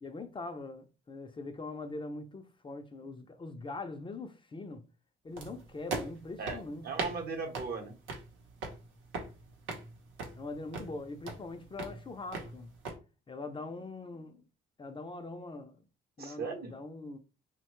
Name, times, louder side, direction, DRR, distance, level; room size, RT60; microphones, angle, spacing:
voice 1, 0.0-4.8 5.2-6.9 10.4-12.7 13.3-14.4 14.8-15.8 16.2-17.2, left 3 dB, 25° left, 0.4 m, -42 dB
sound 1, 5.4-13.0, right 3 dB, 85° right, 0.8 m, -41 dB
voice 2, 6.4-8.0 16.2-16.8, right 4 dB, 50° right, 0.8 m, -38 dB
3.0 x 2.1 x 3.0 m
cardioid pair, 90°, 20 cm